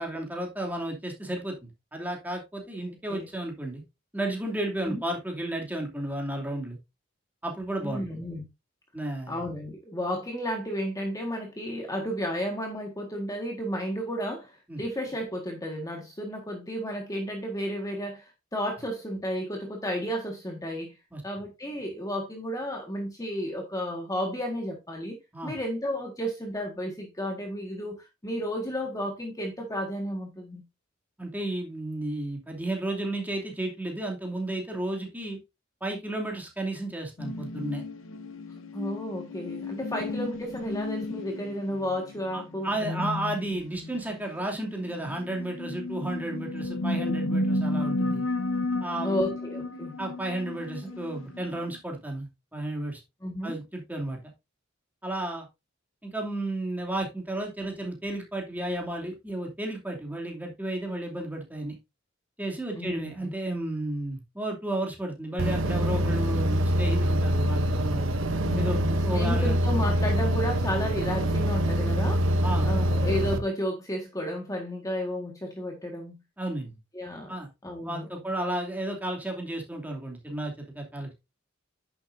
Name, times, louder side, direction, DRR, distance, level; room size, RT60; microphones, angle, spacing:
voice 1, 0.0-1.6 1.9-3.8 4.1-6.8 7.4-8.2 8.9-9.4 14.7-14.8 21.1-21.2 25.3-25.6 31.2-35.4 35.8-37.8 42.3-48.2 48.8-49.3 50.0-53.0 53.4-54.2 55.0-55.5 56.0-61.7 62.4-68.1 68.6-69.6 72.4-72.7 76.4-76.8 77.3-77.5 77.8-81.1, right 1 dB, 10° right, 2.6 m, -33 dB
voice 2, 2.9-3.3 4.9-5.0 7.8-8.4 9.3-21.0 21.2-25.2 25.4-30.6 38.7-43.1 49.0-49.9 53.2-53.6 62.7-63.3 68.4-68.9 69.1-76.2 76.9-77.3 77.6-78.2, equal, 20° left, 1.6 m, -32 dB
sound 1, 37.2-51.8, left 2 dB, 90° left, 0.9 m, -33 dB
sound 2, 65.4-73.4, equal, 75° right, 0.9 m, -25 dB
10.5 x 7.2 x 2.6 m
head